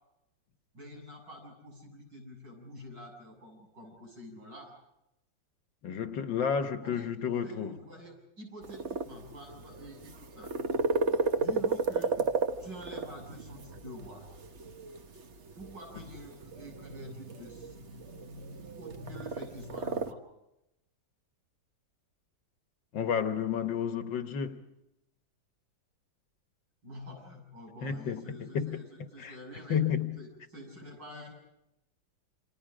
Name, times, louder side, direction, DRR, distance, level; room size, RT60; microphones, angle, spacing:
voice 1, 0.7-4.7 6.8-12.2 12.6-14.3 15.6-17.8 18.8-20.2 26.8-29.8 30.2-31.3, equal, 70° right, 8.1 m, -47 dB
voice 2, 5.8-7.7 22.9-24.6 27.8-29.4 29.7-30.2, left 7 dB, 75° left, 2.0 m, -31 dB
sound 1, 8.6-20.1, right 4 dB, 40° right, 1.4 m, -34 dB
29.0 x 26.5 x 5.1 m
omnidirectional pair, 2.0 m